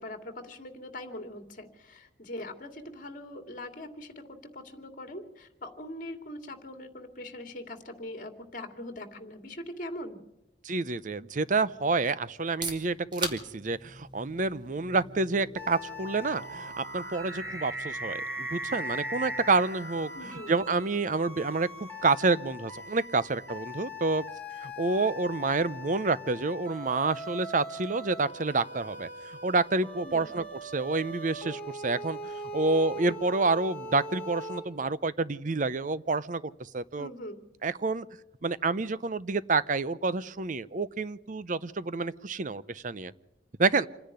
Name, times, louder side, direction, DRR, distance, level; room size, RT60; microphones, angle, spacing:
voice 1, 0.0-10.2 20.1-20.5 30.0-30.4 37.0-37.4, left 1 dB, 45° left, 7 dB, 2.5 m, -42 dB
voice 2, 10.6-21.7 22.0-24.2 24.6-30.4 30.7-37.1 37.6-38.1 38.4-43.1 43.6-43.9, right 3 dB, 45° right, 17 dB, 0.7 m, -28 dB
sound 1, 11.5-11.8 12.7-20.9, right 2 dB, 75° right, 4.7 m, -40 dB
sound 2, 12.3-28.0, right 3 dB, 25° right, 2.4 m, -47 dB
sound 3, 15.6-34.6, left 1 dB, 10° left, 4.5 m, -42 dB
27.0 x 10.5 x 9.8 m, 0.90 s
head